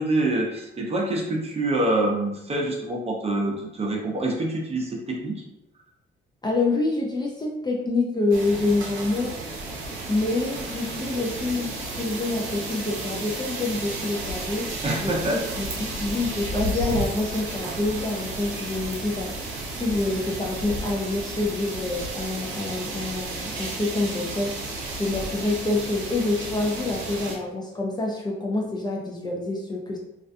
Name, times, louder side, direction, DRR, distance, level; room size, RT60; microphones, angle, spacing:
voice 1, 0.0-5.4 14.8-15.5, right 1 dB, 30° right, -1 dB, 0.6 m, -26 dB
voice 2, 6.4-9.3 10.1-14.7 15.0-19.3 19.8-24.5 24.9-30.0, left 2 dB, 20° left, -2 dB, 0.4 m, -27 dB
sound 1, 8.3-27.4, right 2 dB, 80° right, 0.6 m, -33 dB
2.4 x 2.2 x 2.6 m, 0.89 s
cardioid pair, 90°, 20 cm